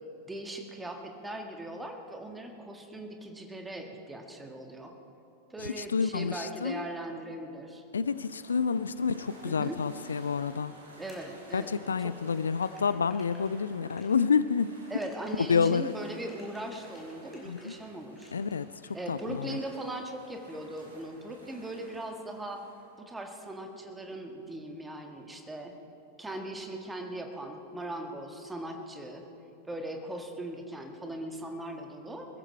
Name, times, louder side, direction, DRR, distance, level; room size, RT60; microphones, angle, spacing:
voice 1, 0.2-4.9 5.5-7.8 9.4-9.8 11.0-12.1 14.9-18.3 18.9-22.6 23.0-25.7 26.2-29.3 29.7-32.3, right 1 dB, 10° right, 3 dB, 1.7 m, -39 dB
voice 2, 5.6-6.9 7.9-10.7 11.5-14.8 15.5-15.9 17.5-17.7 18.3-19.6, left 6 dB, 70° left, 15 dB, 0.3 m, -29 dB
sound 1, 8.1-22.9, right 1 dB, 75° right, 3.5 m, -54 dB
sound 2, 11.1-17.8 18.1-19.7 20.0-20.8, left 2 dB, 5° left, 4.5 m, -58 dB
22.0 x 14.5 x 4.4 m, 3.0 s
figure-of-eight pair, 90°, 0 cm